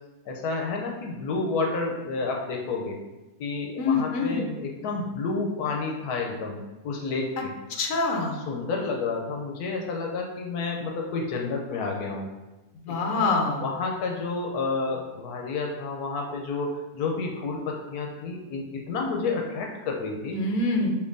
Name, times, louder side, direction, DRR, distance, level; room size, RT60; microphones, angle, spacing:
voice 1, 0.3-3.0 3.4-6.6 6.8-7.5 8.2-12.3 12.9-13.3 13.6-20.3 20.8-20.9, left 4 dB, 85° left, 0 dB, 1.1 m, -30 dB
voice 2, 3.8-4.4 7.7-8.4 12.7-13.6 20.3-20.9, left 3 dB, 65° left, 1 dB, 1.1 m, -25 dB
6.4 x 2.8 x 2.6 m, 1.1 s
omnidirectional pair, 1.6 m